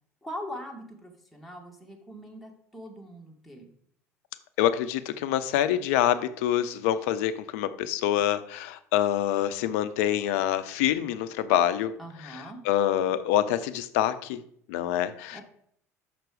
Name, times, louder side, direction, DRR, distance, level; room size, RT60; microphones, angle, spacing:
voice 1, 0.2-3.7 12.0-12.6 15.3-15.4, equal, ahead, 0 dB, 1.9 m, -41 dB
voice 2, 4.6-11.9 12.2-14.4 14.7-15.4, left 11 dB, 65° left, 13 dB, 0.6 m, -26 dB
5.9 x 5.9 x 4.9 m, 0.65 s
hypercardioid pair, 70°, 8 cm